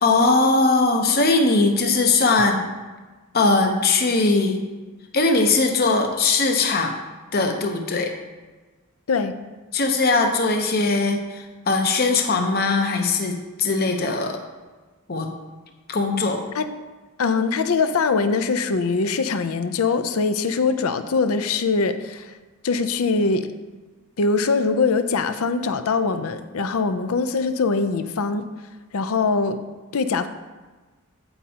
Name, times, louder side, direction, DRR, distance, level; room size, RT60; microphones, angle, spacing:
voice 1, 0.0-2.6 3.3-4.6 5.1-7.0 7.3-8.1 9.7-14.4 15.1-15.3 15.9-16.4, left 3 dB, 45° left, 4 dB, 0.9 m, -20 dB
voice 2, 17.2-22.3 22.6-23.5 24.2-28.5 28.9-29.6 29.9-30.3, left 4 dB, 70° left, 11 dB, 0.5 m, -22 dB
15.5 x 5.4 x 2.9 m, 1.3 s
head